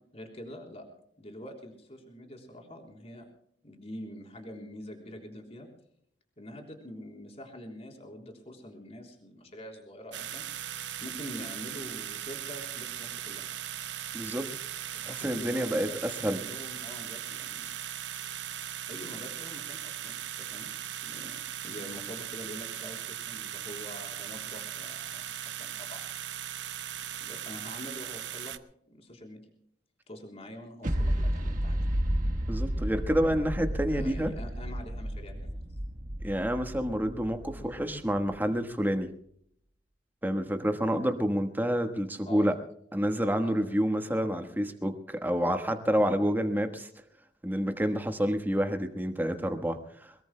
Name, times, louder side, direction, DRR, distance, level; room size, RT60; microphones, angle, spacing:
voice 1, 0.1-0.9 1.2-3.3 3.6-5.7 6.4-10.4 11.0-13.4 14.9-17.7 18.9-20.7 21.0-26.0 27.2-28.5 28.9-29.4 30.1-31.9 33.9-35.6 37.5-37.7 42.2-42.5 43.4-43.7, left 1 dB, 35° left, 3 dB, 3.6 m, -45 dB
sound 1, 10.1-28.6, right 11 dB, 85° right, 0.8 m, -38 dB
voice 2, 14.1-14.5 15.0-15.9 16.2-16.4 32.5-34.3 36.2-39.1 40.2-42.5 42.9-46.9 47.4-50.2, equal, 10° right, 6 dB, 1.3 m, -28 dB
sound 2, 30.8-38.4, equal, 45° right, 1.3 m, -32 dB
23.0 x 21.5 x 2.2 m, 0.68 s
head